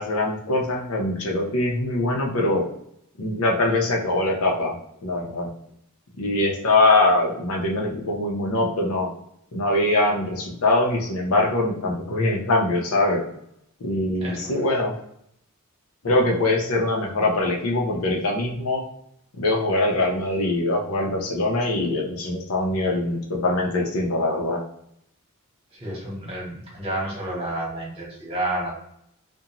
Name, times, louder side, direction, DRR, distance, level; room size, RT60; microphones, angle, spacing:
voice 1, 0.0-2.6 3.2-4.7 5.0-5.5 6.2-9.1 9.5-13.2 13.8-14.9 16.0-18.8 19.4-24.6, left 2 dB, 80° left, 0 dB, 0.6 m, -23 dB
voice 2, 14.2-14.7 25.7-28.7, right 1 dB, 25° right, -5 dB, 1.2 m, -30 dB
2.5 x 2.2 x 2.9 m, 0.74 s
head